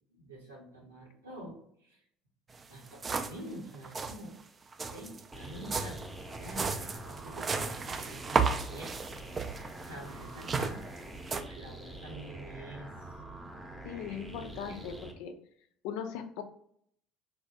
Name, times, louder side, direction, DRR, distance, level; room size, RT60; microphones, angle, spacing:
voice 1, 0.1-2.0 2.7-4.4 4.9-9.4 9.9-10.8 11.3-13.1 14.1-14.9, right 1 dB, 85° right, -3 dB, 0.9 m, -47 dB
sound 1, 2.5-2.6 2.9-3.5 3.7-4.2 4.7-11.4, right 5 dB, 30° right, 0.3 m, -34 dB
sound 2, 5.3-15.1, right 1 dB, 5° right, 0.7 m, -46 dB
voice 2, 13.8-15.3 15.8-16.4, left 7 dB, 65° left, 7 dB, 0.4 m, -39 dB
3.3 x 2.3 x 2.6 m, 0.65 s
figure-of-eight pair, 60°, 0 cm